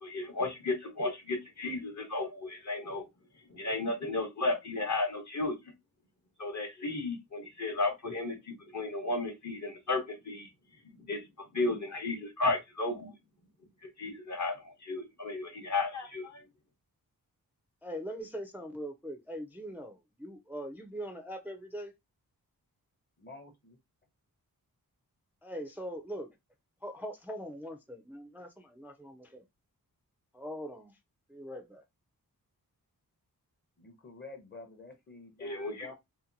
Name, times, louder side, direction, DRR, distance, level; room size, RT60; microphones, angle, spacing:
voice 1, 0.0-3.0 3.5-5.6 6.4-10.5 11.0-13.1 14.0-16.4 35.4-35.9, left 2 dB, 50° left, 0.9 m, -34 dB
voice 2, 17.8-21.9 25.4-26.3 26.8-29.4 30.3-31.0 31.3-31.8, equal, 5° right, 0.4 m, -41 dB
voice 3, 23.2-23.8 33.8-35.9, left 3 dB, 30° left, 0.7 m, -49 dB
2.8 x 2.2 x 2.5 m
wide cardioid pair, 75°, 36 cm